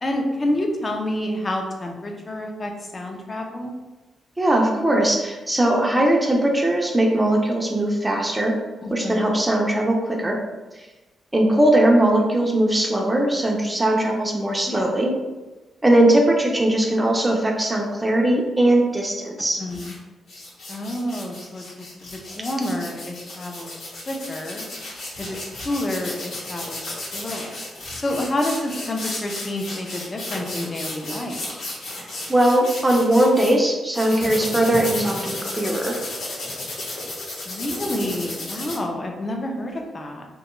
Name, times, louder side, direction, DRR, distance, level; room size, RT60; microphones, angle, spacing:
voice 1, 0.0-3.7 8.8-9.3 14.7-14.9 19.6-19.9 20.7-23.7 24.1-24.7 25.2-25.4 25.6-27.6 27.9-31.5 37.5-40.3, left 1 dB, 35° left, 2 dB, 0.5 m, -29 dB
voice 2, 4.4-8.5 8.9-10.4 11.3-15.1 15.8-19.6 32.3-36.0, right 1 dB, 15° right, 0 dB, 0.5 m, -19 dB
sound 1, 19.7-19.9 20.3-33.5 33.9-38.8, left 2 dB, 80° left, 0.9 m, -33 dB
2.8 x 2.2 x 3.0 m, 1.2 s
cardioid pair, 80°, 0 cm